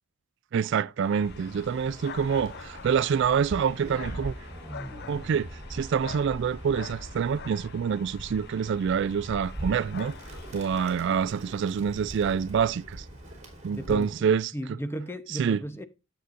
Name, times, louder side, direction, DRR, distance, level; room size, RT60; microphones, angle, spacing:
voice 1, 0.5-4.4 5.1-10.1 10.5-13.1 13.6-14.5 15.3-15.6, right 7 dB, 60° right, 0.3 m, -26 dB
sound 1, 1.0-11.3, left 6 dB, 55° left, 0.6 m, -46 dB
Bird, 1.1-14.3, right 1 dB, 35° right, 3.4 m, -42 dB
sound 2, 3.8-12.0, equal, 20° right, 5.6 m, -49 dB
voice 2, 13.7-14.3 14.5-15.8, equal, 10° left, 0.9 m, -35 dB
10.0 x 8.0 x 2.6 m
head